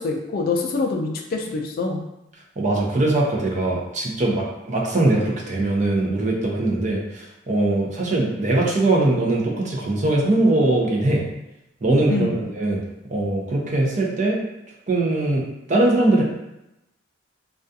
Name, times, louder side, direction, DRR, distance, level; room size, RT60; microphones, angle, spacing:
voice 1, 0.0-2.0 12.1-12.4, left 3 dB, 50° left, 2 dB, 0.3 m, -25 dB
voice 2, 2.6-11.2 11.8-12.8 13.1-14.4 14.9-16.2, right 2 dB, 40° right, -2 dB, 0.5 m, -21 dB
2.3 x 2.3 x 2.6 m, 0.90 s
head